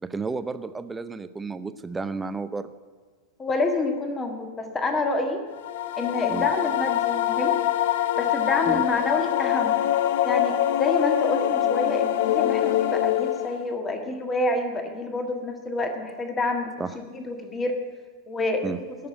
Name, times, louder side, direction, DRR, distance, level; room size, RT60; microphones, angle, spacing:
voice 1, 0.0-2.7 6.3-6.5 8.7-8.8 16.8-17.0 18.6-18.8, right 4 dB, 10° right, 12 dB, 0.7 m, -32 dB
voice 2, 3.4-5.4 6.0-7.5 8.2-9.8 10.2-17.8 18.3-18.7, left 2 dB, 20° left, 4 dB, 1.7 m, -28 dB
sound 1, 5.6-13.7, left 12 dB, 55° left, 0.6 m, -24 dB
19.0 x 6.8 x 9.2 m, 1.5 s
figure-of-eight pair, 90°, 0 cm